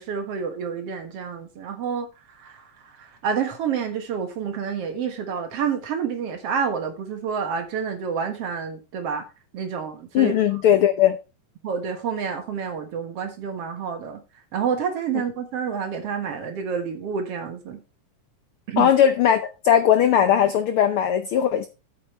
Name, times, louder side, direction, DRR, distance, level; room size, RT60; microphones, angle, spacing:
voice 1, 0.0-2.1 2.3-9.2 9.5-10.3 11.6-14.2 14.5-17.8 18.7-18.9, right 6 dB, 60° right, 2.2 m, -29 dB
voice 2, 10.1-11.2 18.8-21.7, left 9 dB, 85° left, 1.2 m, -18 dB
8.5 x 6.8 x 4.3 m
omnidirectional pair, 3.4 m